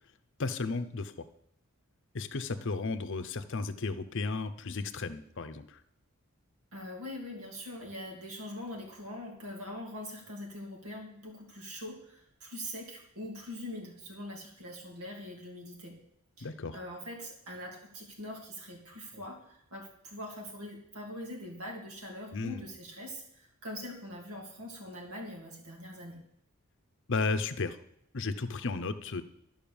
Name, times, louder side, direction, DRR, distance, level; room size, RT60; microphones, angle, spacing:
voice 1, 0.4-1.3 2.1-5.8 16.4-16.8 22.3-22.6 27.1-27.8 28.1-29.2, left 3 dB, 60° left, 11 dB, 0.7 m, -34 dB
voice 2, 6.7-16.0 16.4-26.2, left 1 dB, 85° right, 0 dB, 2.9 m, -43 dB
12.0 x 5.5 x 7.1 m, 0.75 s
head